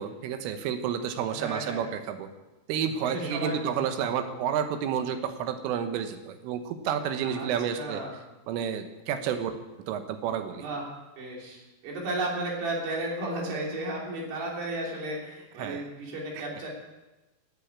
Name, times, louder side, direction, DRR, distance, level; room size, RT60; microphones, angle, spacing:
voice 1, 0.0-2.3 2.7-8.0 8.5-9.5 9.9-10.7 15.6-15.8 16.4-16.5, right 8 dB, 85° right, 7 dB, 3.7 m, -30 dB
voice 2, 1.3-1.8 3.0-3.6 4.1-4.3 7.2-8.1 10.5-10.9 11.2-16.7, right 2 dB, 60° right, -2 dB, 5.3 m, -34 dB
14.5 x 8.5 x 8.6 m, 1.1 s
omnidirectional pair, 5.6 m